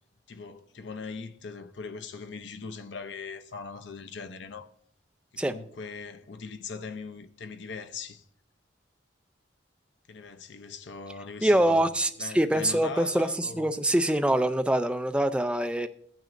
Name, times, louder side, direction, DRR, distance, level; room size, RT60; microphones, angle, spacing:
voice 1, 0.3-4.7 5.3-8.2 10.1-11.9 12.2-13.7 14.3-14.6, left 5 dB, 65° left, 0.6 m, -40 dB
voice 2, 11.4-15.9, right 1 dB, 5° right, 0.4 m, -24 dB
14.0 x 9.2 x 2.6 m
head